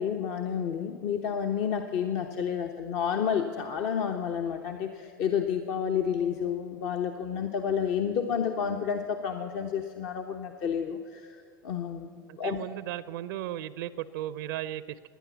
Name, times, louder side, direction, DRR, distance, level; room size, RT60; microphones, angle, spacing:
voice 1, 0.0-12.1 12.4-12.6, left 7 dB, 55° left, 4 dB, 0.9 m, -30 dB
voice 2, 12.3-15.1, right 13 dB, 70° right, 17 dB, 0.5 m, -36 dB
17.5 x 10.5 x 7.1 m, 2.2 s
hypercardioid pair, 85°, 11 cm